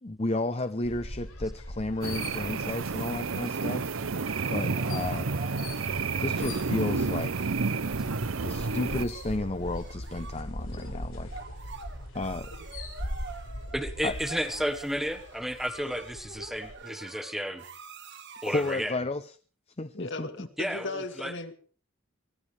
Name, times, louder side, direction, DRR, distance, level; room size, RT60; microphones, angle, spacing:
voice 1, 0.0-3.9 4.5-5.3 6.2-7.5 8.4-11.3 12.1-12.5 14.0-14.1 18.4-19.3 19.8-20.5, left 2 dB, 30° left, 10 dB, 0.7 m, -32 dB
sound 1, 0.8-16.8, left 1 dB, 80° left, 7.1 m, -41 dB
sound 2, 2.0-9.0, right 4 dB, 70° right, 0.7 m, -30 dB
sound 3, 3.8-19.0, right 4 dB, 55° right, 1.6 m, -47 dB
voice 2, 13.7-17.6 18.4-18.9 20.6-21.3, equal, ahead, 7 dB, 1.2 m, -32 dB
voice 3, 19.9-21.5, left 3 dB, 55° left, 7 dB, 2.0 m, -36 dB
23.5 x 16.0 x 3.4 m, 0.40 s
head